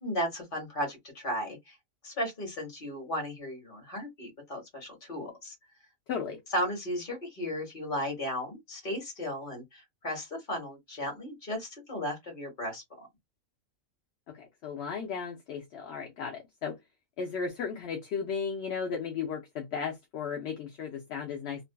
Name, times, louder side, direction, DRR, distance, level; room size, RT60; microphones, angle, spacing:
voice 1, 0.0-1.8 2.0-5.5 6.5-13.1, equal, 40° left, 1.3 m, -35 dB
voice 2, 6.1-6.4 14.3-16.8 17.2-21.6, left 6 dB, 60° left, 0.8 m, -35 dB
2.6 x 2.4 x 2.2 m
omnidirectional pair, 1.4 m